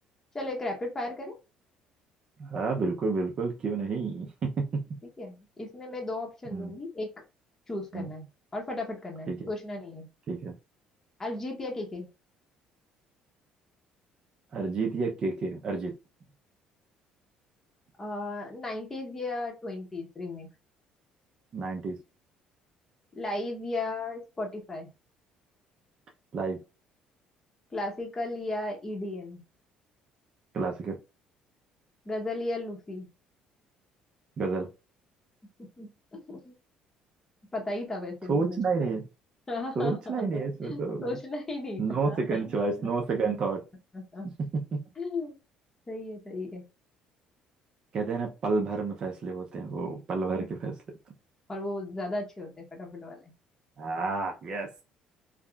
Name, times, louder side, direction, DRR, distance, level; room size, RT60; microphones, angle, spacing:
voice 1, 0.3-1.4 5.2-7.1 7.7-8.3 8.5-10.1 11.2-12.1 18.0-20.5 23.1-24.9 27.7-29.4 32.0-33.1 35.6-36.5 37.5-38.6 39.5-42.4 43.9-44.3 45.0-45.3 45.9-46.6 50.3-50.4 51.5-53.3, left 2 dB, 20° left, 0 dB, 0.8 m, -35 dB
voice 2, 2.4-4.8 6.5-6.7 7.9-8.1 9.3-9.5 10.3-10.5 14.5-15.9 21.5-22.0 26.3-26.6 30.5-31.0 34.4-34.7 38.3-39.1 39.8-41.1 41.8-43.6 44.7-44.8 47.9-50.7 53.8-54.8, right 4 dB, 40° right, 1 dB, 0.5 m, -30 dB
3.5 x 2.1 x 2.2 m, 0.29 s
cardioid pair, 115°, 2 cm